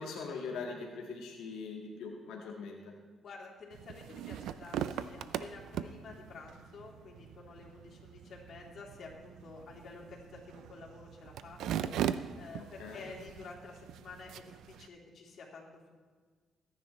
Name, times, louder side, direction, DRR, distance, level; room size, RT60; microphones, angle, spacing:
voice 1, 0.0-2.9 12.6-13.1, left 4 dB, 90° left, -1 dB, 1.9 m, -42 dB
voice 2, 3.2-11.9 12.4-15.9, left 4 dB, 60° left, -2 dB, 3.4 m, -50 dB
sound 1, 3.7-14.9, right 10 dB, 85° right, 0.5 m, -41 dB
22.5 x 10.5 x 3.2 m, 1.5 s
cardioid pair, 90°, 0 cm